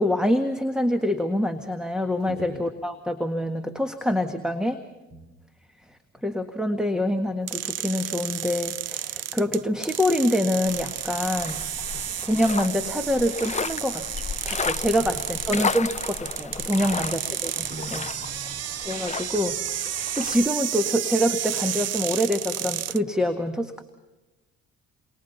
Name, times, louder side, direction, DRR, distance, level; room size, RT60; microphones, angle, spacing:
voice 1, 0.0-4.8 6.2-11.7 12.2-14.1 14.4-18.0 18.8-19.6 19.9-23.8, left 1 dB, ahead, 6 dB, 1.7 m, -25 dB
voice 2, 2.3-2.6 5.1-5.3 11.9-12.0 15.0-15.2 16.8-17.1 17.7-18.7, right 1 dB, 35° right, 7 dB, 4.7 m, -41 dB
sound 1, 7.5-23.0, right 11 dB, 55° right, 0.6 m, -32 dB
sound 2, 10.6-20.5, left 5 dB, 25° left, 0.6 m, -34 dB
29.5 x 23.5 x 4.2 m, 1.1 s
cardioid pair, 90°, 30 cm